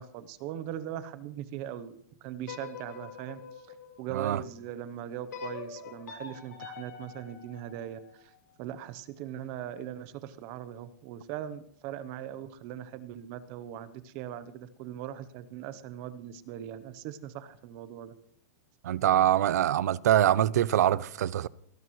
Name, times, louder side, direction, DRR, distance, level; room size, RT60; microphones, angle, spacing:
voice 1, 0.0-3.4 4.0-8.3 8.6-18.1, right 11 dB, 30° right, 0.8 m, -40 dB
sound 1, 2.4-4.6 5.3-8.4, left 7 dB, 80° left, 6.5 m, -45 dB
voice 2, 4.1-4.4 18.8-21.5, right 11 dB, 70° right, 0.6 m, -24 dB
18.5 x 17.5 x 3.1 m
supercardioid pair, 175°, 9 cm